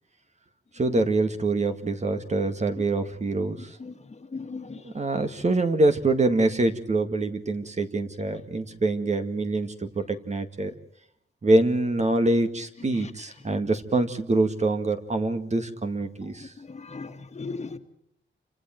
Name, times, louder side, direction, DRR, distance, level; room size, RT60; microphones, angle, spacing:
voice 1, 0.8-3.8 4.8-10.7 11.4-16.5, right 2 dB, 35° right, 2.0 m, -25 dB
voice 2, 4.3-4.8 16.7-17.8, left 4 dB, 35° left, 1.9 m, -36 dB
29.0 x 26.0 x 4.5 m
wide cardioid pair, 135°, 20 cm